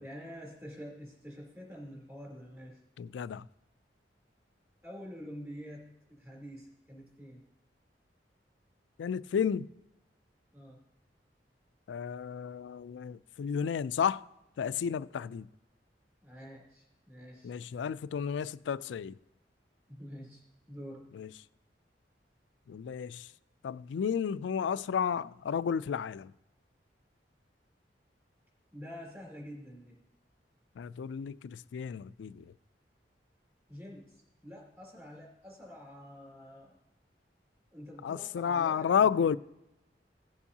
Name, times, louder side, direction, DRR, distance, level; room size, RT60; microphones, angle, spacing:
voice 1, 0.0-2.8 4.8-7.4 10.5-10.8 16.2-17.5 19.9-21.1 28.7-30.0 33.7-36.8 37.7-39.4, equal, 15° right, 3.2 m, -47 dB
voice 2, 3.0-3.5 9.0-9.7 11.9-14.2 14.6-15.5 17.4-19.2 21.1-21.3 22.7-23.3 23.6-26.3 30.8-32.5 38.0-39.4, left 7 dB, 90° left, 0.3 m, -32 dB
16.5 x 7.1 x 2.8 m
head